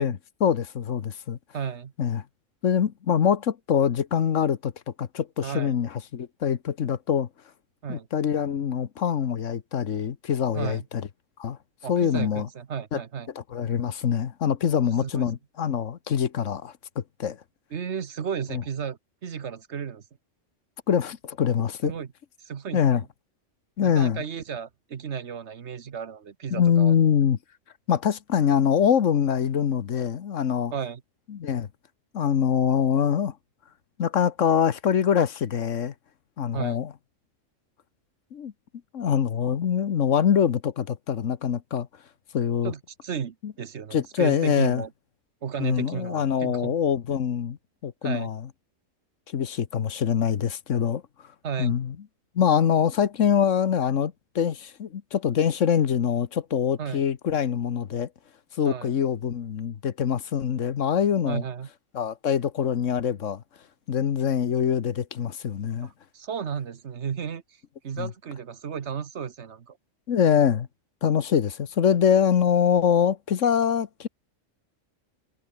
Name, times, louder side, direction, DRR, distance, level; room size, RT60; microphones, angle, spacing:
voice 1, 0.0-1.4 2.0-2.2 2.6-4.7 5.0-7.3 7.9-11.1 11.4-11.6 11.9-12.5 12.9-13.0 13.3-17.4 18.5-18.6 20.9-21.9 22.7-23.0 23.8-24.2 26.5-27.4 27.9-30.7 31.3-31.7 32.1-33.3 34.0-35.9 36.4-36.9 38.3-38.5 38.9-41.9 42.3-42.7 43.4-43.5 43.9-44.8 45.6-47.6 47.8-48.5 49.3-51.0 51.6-52.0 52.3-58.1 58.6-61.4 61.9-63.4 63.9-65.9 68.0-68.1 70.1-70.7 71.0-74.1, left 8 dB, 70° left, 1.4 m, -24 dB
voice 2, 1.5-1.9 5.4-5.8 7.8-8.1 10.5-10.9 11.8-13.3 15.0-15.3 17.7-20.0 21.8-22.1 22.4-23.0 23.8-26.9 30.7-31.0 36.5-36.8 42.6-44.9 45.4-46.8 48.0-48.3 51.4-51.8 56.8-57.0 58.6-58.9 61.3-61.7 66.1-67.4 67.8-69.8, right 7 dB, 60° right, 1.3 m, -33 dB
omnidirectional pair, 1.3 m